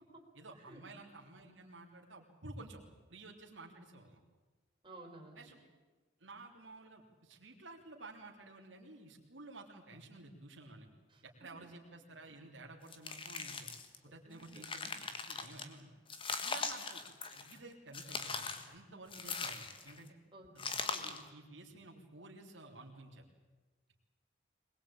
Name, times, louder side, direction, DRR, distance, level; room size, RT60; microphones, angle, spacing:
voice 1, 0.3-2.8 3.1-4.2 5.3-5.6 6.2-10.9 11.2-13.7 14.0-15.9 16.4-17.0 17.3-20.1 20.5-23.3, right 2 dB, 85° right, 0 dB, 3.3 m, -53 dB
voice 2, 4.8-5.5 11.1-11.2 14.2-14.6 16.6-16.8 20.3-20.5, right 2 dB, 25° right, 0 dB, 3.9 m, -54 dB
sound 1, 12.9-14.0 14.4-15.7 16.1-17.6 17.9-18.7 19.1-20.0 20.6-21.3, left 4 dB, 30° left, 1.5 m, -40 dB
22.5 x 20.5 x 8.7 m, 1.3 s
head